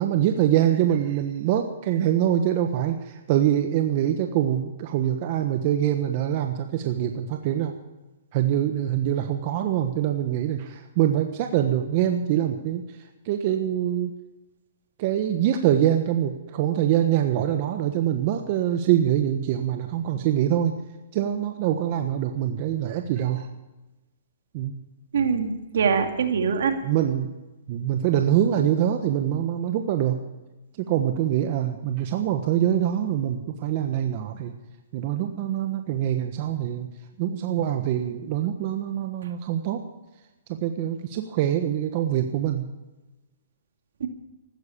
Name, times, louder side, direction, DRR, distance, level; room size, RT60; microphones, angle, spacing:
voice 1, 0.0-7.7 8.3-14.1 15.0-20.7 21.1-23.5 24.5-24.7 26.8-27.3 27.7-30.2 30.8-34.5 34.9-36.9 37.2-39.9 40.5-42.7, right 11 dB, 45° right, 5 dB, 1.3 m, -24 dB
voice 2, 25.1-26.8 44.0-44.1, right 6 dB, 70° right, 5 dB, 2.5 m, -23 dB
15.5 x 12.5 x 6.8 m, 1.1 s
hypercardioid pair, 145°, 0 cm